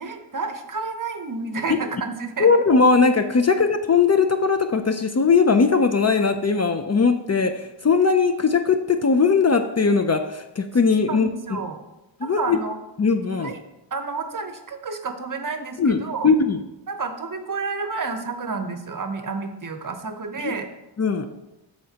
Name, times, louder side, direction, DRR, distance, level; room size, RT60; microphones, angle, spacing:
voice 1, 0.0-2.5 11.1-11.8 12.2-12.8 13.4-13.6 13.9-16.3 16.9-20.7, right 4 dB, 45° right, 7 dB, 0.8 m, -30 dB
voice 2, 2.4-11.6 12.2-12.6 13.0-13.5 15.8-16.6 20.4-20.5 21.0-21.3, left 5 dB, 35° left, 7 dB, 0.4 m, -19 dB
13.0 x 4.4 x 2.8 m, 1.0 s
wide cardioid pair, 110°, 45 cm